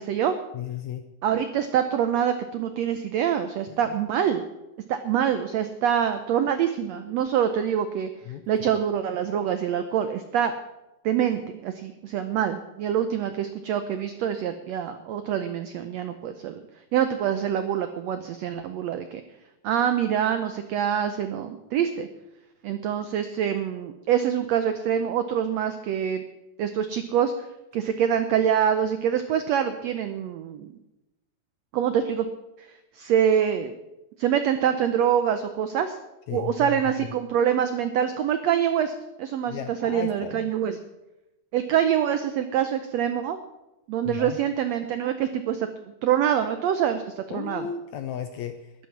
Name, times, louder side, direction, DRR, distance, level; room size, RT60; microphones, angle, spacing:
voice 1, 0.0-0.4 1.2-4.4 4.9-8.1 8.5-10.5 11.0-16.6 16.9-19.2 19.6-22.1 22.6-26.2 26.6-27.3 27.7-30.7 31.7-32.3 32.6-32.7 32.9-33.7 34.2-35.9 36.3-40.8 41.5-43.4 43.9-45.7 46.0-47.7, right 9 dB, 90° right, 9 dB, 1.5 m, -25 dB
voice 2, 0.5-1.1 3.7-3.9 8.3-8.4 36.3-37.1 39.5-40.5 44.0-44.4 47.3-48.9, left 9 dB, 80° left, 8 dB, 1.7 m, -35 dB
13.0 x 11.0 x 6.0 m, 0.96 s
omnidirectional pair, 3.9 m